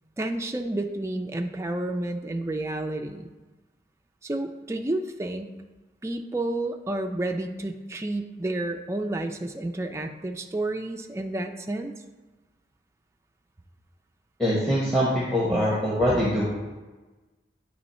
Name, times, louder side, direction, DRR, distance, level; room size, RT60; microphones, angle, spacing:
voice 1, 0.2-3.3 4.2-5.5 6.0-11.9, right 2 dB, 15° right, 4 dB, 0.3 m, -30 dB
voice 2, 14.4-16.4, equal, 5° left, -7 dB, 1.0 m, -23 dB
8.8 x 3.0 x 4.2 m, 1.2 s
head